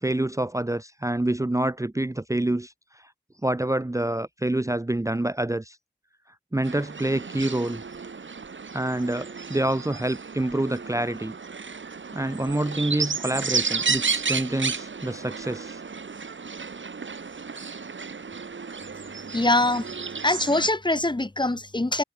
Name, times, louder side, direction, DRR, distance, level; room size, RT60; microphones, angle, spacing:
voice 1, 0.0-2.7 3.4-5.8 6.5-7.8 8.7-11.4 12.1-15.8, right 1 dB, 15° right, 0.7 m, -27 dB
sound 1, 6.6-20.7, right 5 dB, 80° right, 1.2 m, -32 dB
voice 2, 19.3-19.9 20.2-22.0, left 2 dB, 25° left, 1.1 m, -23 dB
wide cardioid pair, 60°, 19 cm